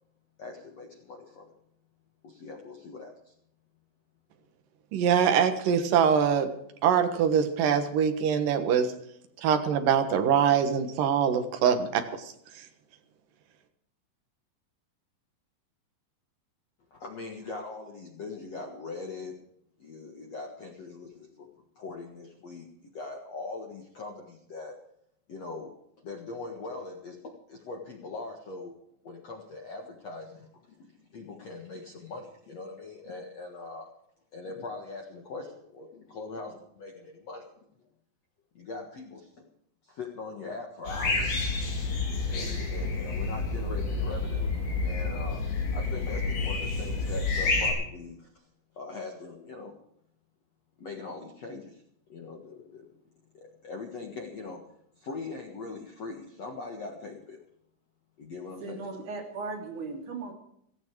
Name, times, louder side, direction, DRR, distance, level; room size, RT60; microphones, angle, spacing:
voice 1, 0.4-1.5 2.2-3.3 16.9-19.4 19.8-21.5 21.7-24.8 25.3-28.7 29.0-33.9 34.3-37.4 38.5-39.5 39.8-41.4 42.3-44.5 44.8-48.3 48.7-49.7 50.8-51.8 52.1-52.9 53.3-54.6 55.0-57.4 58.2-59.1, left 3 dB, 70° left, 2 dB, 1.5 m, -41 dB
voice 2, 4.9-6.5 6.8-8.9 9.4-12.6, right 7 dB, 65° right, 7 dB, 2.3 m, -24 dB
sound 1, 40.8-47.7, left 3 dB, 50° left, 5.3 m, -29 dB
voice 3, 58.6-60.3, right 3 dB, 45° right, 2 dB, 3.9 m, -37 dB
17.0 x 15.0 x 4.7 m, 0.72 s
omnidirectional pair, 5.7 m